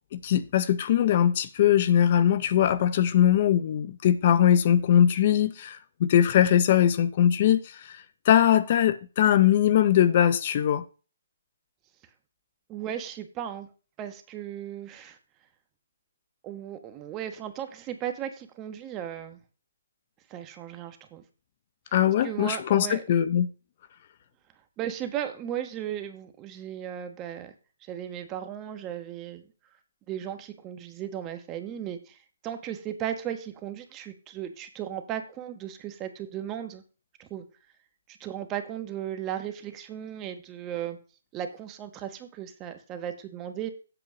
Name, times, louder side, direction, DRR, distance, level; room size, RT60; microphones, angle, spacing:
voice 1, 0.1-10.8 21.9-23.5, left 10 dB, 45° left, 0.6 m, -21 dB
voice 2, 12.7-13.7 14.0-15.2 16.4-19.4 20.3-21.2 22.2-23.0 24.8-27.5 27.9-29.4 30.1-32.2 32.4-36.8 37.2-37.4 38.1-41.0 41.3-43.7, right 10 dB, 25° right, 1.2 m, -36 dB
8.0 x 4.5 x 6.1 m
hypercardioid pair, 140°, 0 cm